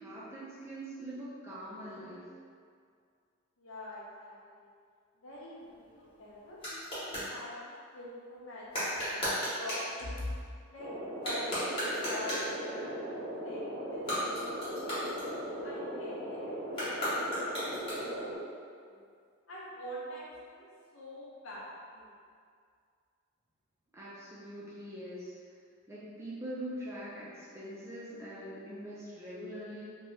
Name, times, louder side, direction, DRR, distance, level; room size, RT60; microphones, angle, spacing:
voice 1, 0.0-2.3 23.9-25.3 25.9-30.0, right 1 dB, 10° right, -8 dB, 0.4 m, -43 dB
voice 2, 3.6-4.7 5.2-10.4 10.7-13.2 13.4-15.1 15.6-17.7 18.9-19.1 19.5-20.6 20.9-22.2, left 1 dB, 70° left, -6 dB, 0.7 m, -45 dB
sound 1, 5.6-7.3 8.7-9.9 11.1-12.6 13.9-15.7 16.7-18.3, equal, 25° left, 1.0 m, -36 dB
sound 2, 10.8-18.4, equal, 85° right, 0.9 m, -39 dB
2.9 x 2.2 x 3.1 m, 2.2 s
head